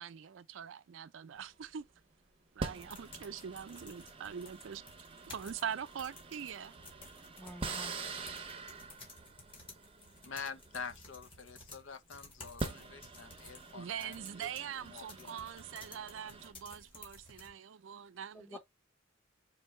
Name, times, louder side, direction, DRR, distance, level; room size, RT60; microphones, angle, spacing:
voice 1, 0.0-1.8 2.5-4.8 5.3-6.7 13.7-18.6, right 8 dB, 75° right, 0.4 m, -43 dB
sound 1, 1.4-1.6 2.6-11.6 12.4-16.5, right 3 dB, 30° right, 0.6 m, -46 dB
sound 2, 2.7-17.5, left 2 dB, 30° left, 1.6 m, -55 dB
voice 2, 7.1-8.0 18.3-18.6, equal, 10° left, 0.8 m, -49 dB
voice 3, 10.2-14.5 14.9-15.5, left 5 dB, 70° left, 0.6 m, -46 dB
4.5 x 2.7 x 3.0 m
head